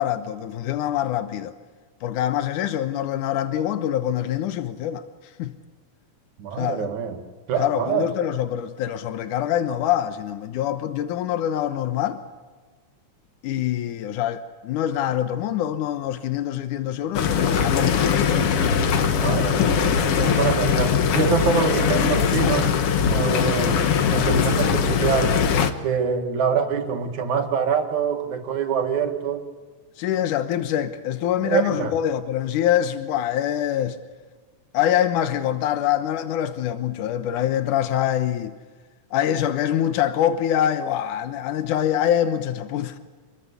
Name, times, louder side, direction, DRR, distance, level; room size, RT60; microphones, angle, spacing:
voice 1, 0.0-1.5 2.0-5.0 5.4-5.5 6.6-6.9 7.6-12.2 13.4-18.9 19.6-19.7 30.0-34.0 34.7-38.5 39.1-43.0, left 11 dB, 85° left, 2.6 m, -25 dB
voice 2, 6.4-7.2 7.5-8.1 19.1-22.7 23.1-23.8 24.1-25.4 25.8-29.4 31.4-31.9, right 6 dB, 70° right, 3.2 m, -25 dB
sound 1, 17.1-25.7, left 7 dB, 55° left, 2.0 m, -21 dB
27.5 x 21.5 x 8.4 m
omnidirectional pair, 3.5 m